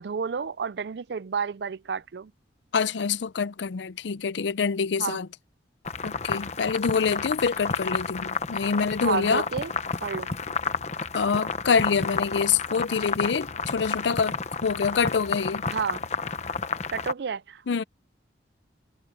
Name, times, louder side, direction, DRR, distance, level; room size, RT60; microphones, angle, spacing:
voice 1, 0.0-2.3 5.0-5.2 9.0-9.7 10.0-10.3 15.7-16.0 16.9-17.6, right 6 dB, 65° right, 0.4 m, -30 dB
voice 2, 2.7-5.3 6.0-9.4 11.1-14.4 14.6-15.6 17.7-17.8, left 5 dB, 80° left, 0.5 m, -26 dB
sound 1, 5.8-17.1, left 5 dB, 40° left, 0.9 m, -31 dB
head